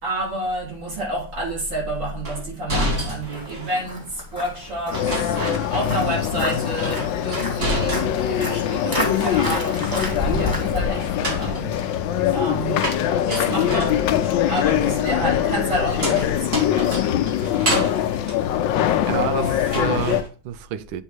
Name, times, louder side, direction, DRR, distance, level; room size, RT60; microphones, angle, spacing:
voice 1, 0.0-5.4 5.7-11.7 12.2-12.8 13.3-14.0 14.5-16.6, right 1 dB, 65° right, 4.9 m, -29 dB
sound 1, 2.2-3.9 4.9-6.2 6.5-8.4 8.7-9.6 11.0-19.3 19.6-20.3, equal, 40° right, 2.4 m, -30 dB
Walk footsteps, 2.9-11.5, left 1 dB, 10° right, 1.5 m, -31 dB
sound 2, 4.9-20.2, left 10 dB, 75° left, 1.3 m, -23 dB
voice 2, 19.1-21.0, right 10 dB, 85° right, 1.4 m, -28 dB
8.2 x 3.7 x 4.7 m
omnidirectional pair, 2.1 m